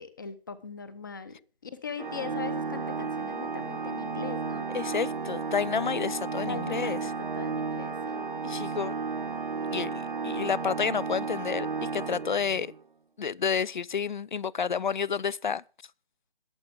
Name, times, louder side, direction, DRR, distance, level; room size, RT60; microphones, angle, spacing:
voice 1, 0.0-4.7 6.5-8.3, left 6 dB, 20° left, 0.7 m, -40 dB
Organ, 2.0-12.8, right 4 dB, 55° right, 0.9 m, -33 dB
voice 2, 4.7-7.0 8.4-8.9 9.7-9.9 10.2-12.7 13.2-15.6, left 6 dB, 50° left, 0.5 m, -30 dB
21.5 x 7.5 x 3.6 m
figure-of-eight pair, 150°, 30 cm